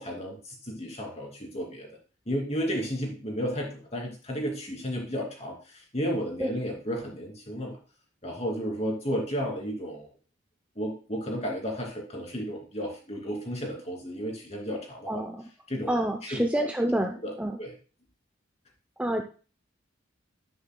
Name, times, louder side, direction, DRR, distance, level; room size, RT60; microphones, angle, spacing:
voice 1, 0.0-1.9 2.3-7.8 8.2-10.1 10.8-15.2 15.7-16.4 17.2-17.3 17.6-17.7, equal, 35° left, 0 dB, 2.7 m, -33 dB
voice 2, 15.9-17.6 19.0-19.2, right 1 dB, 5° right, 4 dB, 0.5 m, -27 dB
9.9 x 9.6 x 2.2 m, 0.37 s
head